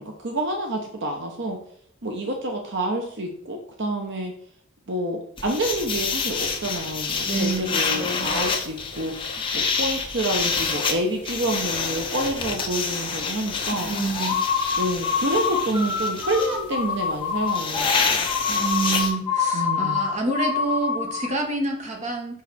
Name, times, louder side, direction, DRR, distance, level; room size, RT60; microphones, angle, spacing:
voice 1, 0.0-1.6 2.0-4.3 4.9-9.1 9.5-13.9 14.8-18.3 19.5-20.0, right 1 dB, 60° right, 3 dB, 0.9 m, -28 dB
sound 1, 5.4-19.1, left 5 dB, 25° left, 1.0 m, -28 dB
voice 2, 7.2-8.4 13.7-14.4 18.5-22.4, right 3 dB, 35° right, 1 dB, 1.4 m, -28 dB
sound 2, 14.1-21.3, left 6 dB, 5° left, 3.1 m, -26 dB
6.3 x 5.6 x 4.2 m, 0.67 s
head